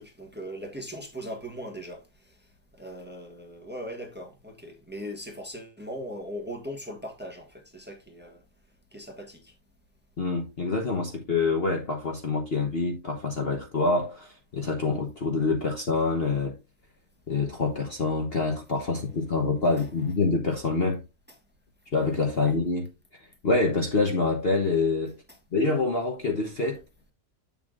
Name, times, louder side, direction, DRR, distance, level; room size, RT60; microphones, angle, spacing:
voice 1, 0.0-2.4 2.7-8.4 8.9-9.5 22.4-22.5, equal, 5° right, 1.5 m, -39 dB
voice 2, 10.2-16.5 17.3-21.0 21.9-22.9 23.4-25.1 25.5-26.8, left 3 dB, 40° left, 1.2 m, -26 dB
8.1 x 7.1 x 2.5 m
omnidirectional pair, 1.7 m